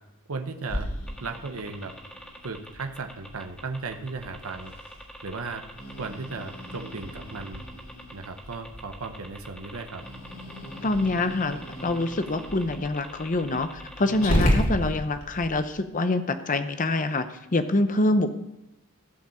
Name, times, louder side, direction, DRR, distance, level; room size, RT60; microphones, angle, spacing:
voice 1, 0.3-0.9 1.2-1.9 2.4-4.7 5.2-5.7 6.0-7.6 8.1-10.0, right 4 dB, 70° right, 6 dB, 0.9 m, -36 dB
Growling, 0.7-15.5, equal, 70° left, 3.2 m, -34 dB
sound 1, 1.1-14.9, equal, 5° left, 1.6 m, -45 dB
voice 2, 10.8-17.3 17.5-18.3, left 2 dB, 35° left, 9 dB, 0.7 m, -25 dB
15.5 x 5.2 x 7.1 m, 0.91 s
head